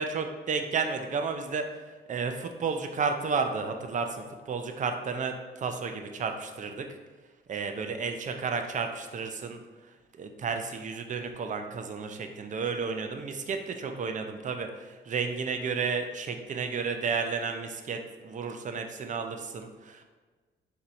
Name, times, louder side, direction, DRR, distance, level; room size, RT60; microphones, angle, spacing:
voice 1, 0.0-1.6 2.1-6.8 7.5-9.6 10.1-20.0, right 5 dB, 40° right, 6 dB, 0.5 m, -32 dB
4.1 x 2.8 x 3.1 m, 1.3 s
cardioid pair, 90°, 20 cm